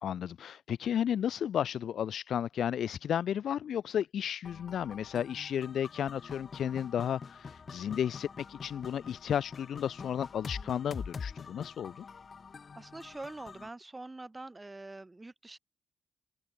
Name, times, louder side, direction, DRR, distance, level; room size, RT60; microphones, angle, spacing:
voice 1, 0.0-12.0, left 9 dB, 75° left, 0.4 m, -33 dB
sound 1, 4.4-13.7, left 5 dB, 40° left, 1.5 m, -45 dB
voice 2, 12.8-15.6, right 2 dB, 15° right, 7.6 m, -45 dB
open air
wide cardioid pair, 140°, 0 cm